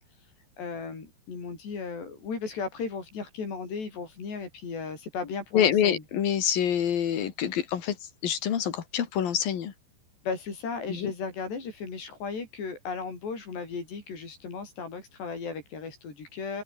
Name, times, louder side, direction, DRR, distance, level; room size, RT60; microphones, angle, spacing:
voice 1, 0.0-6.0 10.2-16.6, left 5 dB, 80° left, 9.0 m, -36 dB
voice 2, 5.5-8.0 8.2-9.7 10.9-11.1, left 9 dB, 60° left, 4.1 m, -26 dB
open air
omnidirectional pair, 4.8 m